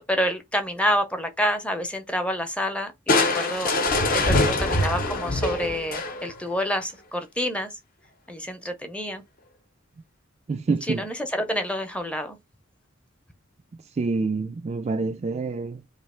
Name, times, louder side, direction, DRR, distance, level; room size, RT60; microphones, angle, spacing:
voice 1, 0.1-3.7 4.1-7.7 8.3-9.2 10.8-12.4, equal, 5° left, 0.6 m, -28 dB
Crushing, 3.1-6.5, left 2 dB, 45° left, 0.7 m, -23 dB
voice 2, 10.5-11.0 14.0-15.8, right 3 dB, 35° right, 0.3 m, -27 dB
3.1 x 2.7 x 4.3 m
head